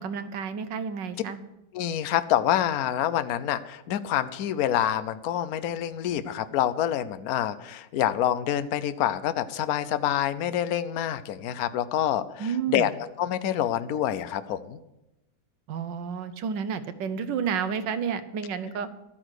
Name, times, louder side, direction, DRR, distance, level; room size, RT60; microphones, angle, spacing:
voice 1, 0.0-1.4 12.4-12.9 15.7-18.9, right 6 dB, 85° right, 12 dB, 1.5 m, -30 dB
voice 2, 1.7-14.8, left 11 dB, 65° left, 13 dB, 1.1 m, -27 dB
12.5 x 9.9 x 6.4 m, 0.92 s
omnidirectional pair, 1.9 m